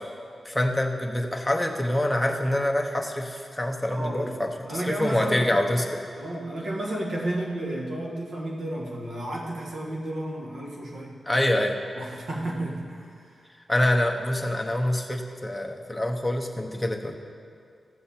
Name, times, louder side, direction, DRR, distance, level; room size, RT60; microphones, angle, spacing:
voice 1, 0.4-6.0 11.2-11.8 13.7-17.2, left 1 dB, 5° left, 1 dB, 0.8 m, -26 dB
voice 2, 3.9-5.5 6.1-11.1 11.9-13.3, right 1 dB, 75° right, -3 dB, 1.4 m, -32 dB
14.5 x 7.3 x 4.3 m, 2.3 s
wide cardioid pair, 140°, 0 cm